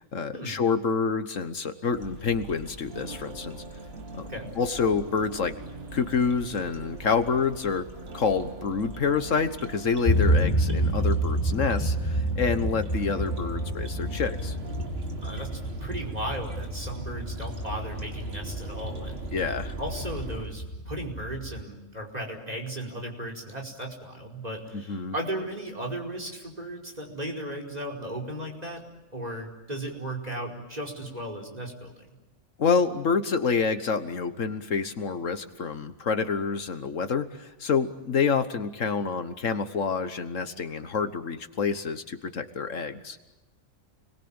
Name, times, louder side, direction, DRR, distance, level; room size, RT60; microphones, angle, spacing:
voice 1, 0.0-3.6 4.6-5.5 5.9-7.9 8.1-14.6 19.3-19.7 24.9-25.1 32.6-43.2, left 5 dB, 70° left, 10 dB, 1.6 m, -27 dB
sound 1, 1.9-20.5, right 1 dB, 45° right, 2.4 m, -42 dB
sound 2, 2.9-14.9, right 3 dB, 85° right, 2.3 m, -44 dB
sound 3, 10.0-21.6, right 1 dB, 20° left, 2.2 m, -29 dB
voice 2, 15.2-19.2 19.8-28.8 29.1-32.2, right 1 dB, 30° right, 2 dB, 5.2 m, -36 dB
30.0 x 21.5 x 8.9 m, 1.0 s
omnidirectional pair, 1.4 m